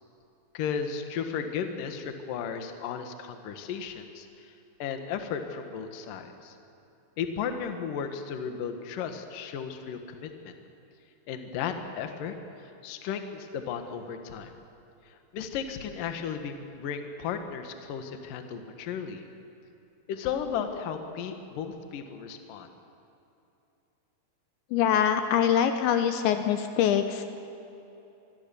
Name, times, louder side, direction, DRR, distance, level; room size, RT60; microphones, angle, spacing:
voice 1, 0.5-4.5 4.8-6.6 7.2-10.5 11.3-12.3 12.6-14.5 15.3-19.2 20.1-22.7, left 7 dB, 60° left, 6 dB, 2.6 m, -35 dB
voice 2, 24.7-27.2, left 9 dB, 80° left, 7 dB, 3.2 m, -24 dB
26.0 x 22.0 x 7.1 m, 2.9 s
omnidirectional pair, 5.5 m